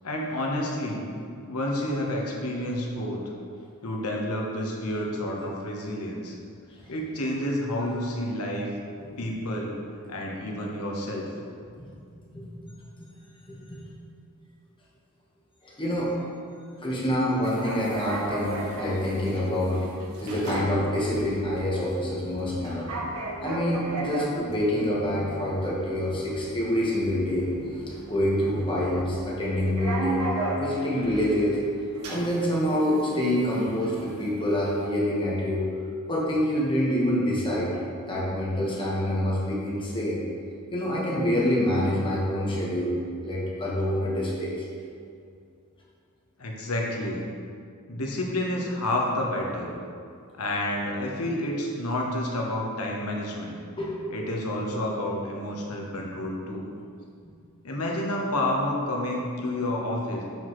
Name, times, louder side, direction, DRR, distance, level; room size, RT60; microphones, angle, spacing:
voice 1, 0.0-1.1 1.5-3.2 3.8-6.4 6.9-8.7 9.2-9.8 10.1-11.3 46.4-47.2 47.8-49.8 50.4-53.6 54.1-56.7 57.6-60.2, left 1 dB, 90° left, -1 dB, 1.1 m, -29 dB
voice 2, 12.3-12.8 13.5-13.8 15.6-16.1 16.8-19.9 20.2-22.9 23.4-27.5 28.1-31.6 32.1-35.6 36.1-37.7 38.1-40.2 40.7-42.9 43.2-44.5 53.8-54.1, left 1 dB, 25° left, -6 dB, 1.4 m, -26 dB
sound 1, 17.4-34.9, right 2 dB, 80° right, 0.9 m, -36 dB
7.0 x 5.9 x 3.2 m, 2.3 s
head